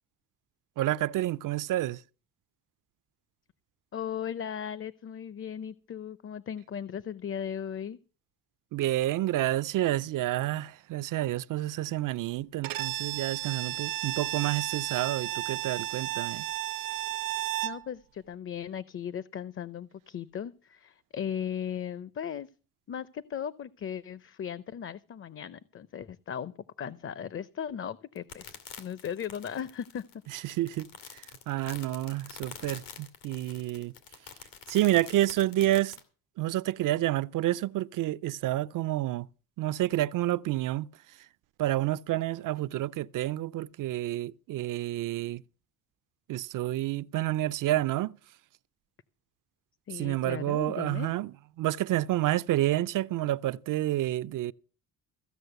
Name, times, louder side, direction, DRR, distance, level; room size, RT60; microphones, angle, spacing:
voice 1, 0.8-2.0 8.7-16.4 30.3-33.9 34.7-36.0 36.4-39.3 39.6-40.9 41.6-45.4 46.3-48.2 49.9-54.5, right 15 dB, 70° right, 0.5 m, -29 dB
voice 2, 3.9-8.0 17.6-22.5 22.9-30.0 49.9-51.1, left 8 dB, 40° left, 0.6 m, -37 dB
Bowed string instrument, 12.6-17.9, right 15 dB, 90° right, 0.9 m, -33 dB
sound 1, 28.2-36.0, left 8 dB, 90° left, 2.5 m, -46 dB
15.0 x 6.3 x 8.0 m
cardioid pair, 90°, 34 cm